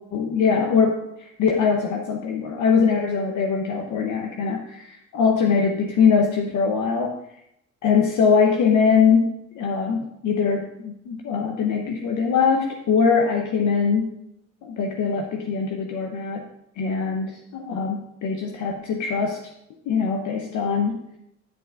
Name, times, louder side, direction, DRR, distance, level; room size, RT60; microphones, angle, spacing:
voice 1, 0.1-7.2 7.8-9.3 9.5-14.1 14.6-16.5 16.8-19.4 19.9-21.0, left 5 dB, 75° left, 2 dB, 0.8 m, -22 dB
9.6 x 8.3 x 2.4 m, 0.80 s
cardioid pair, 90°, 30 cm